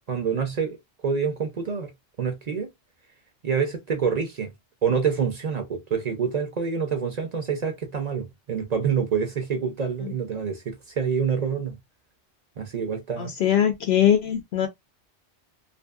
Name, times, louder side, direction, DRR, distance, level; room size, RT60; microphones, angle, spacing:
voice 1, 0.1-0.8 1.0-1.9 2.2-2.7 3.4-4.5 4.8-11.8 12.6-13.3, right 6 dB, 50° right, 0.5 m, -27 dB
voice 2, 13.2-14.7, left 10 dB, 70° left, 0.8 m, -21 dB
2.6 x 2.5 x 2.3 m
omnidirectional pair, 1.2 m